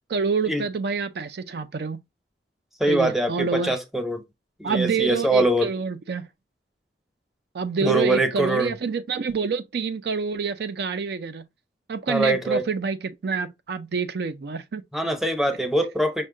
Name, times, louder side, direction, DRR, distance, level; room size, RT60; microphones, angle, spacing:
voice 1, 0.1-2.0 2.9-3.8 4.6-6.3 7.5-11.4 11.9-14.8, right 5 dB, 65° right, 0.4 m, -27 dB
voice 2, 2.8-4.2 4.6-5.7 7.8-8.7 12.1-12.6 14.9-16.3, right 1 dB, ahead, 0.7 m, -23 dB
5.4 x 2.2 x 3.7 m
head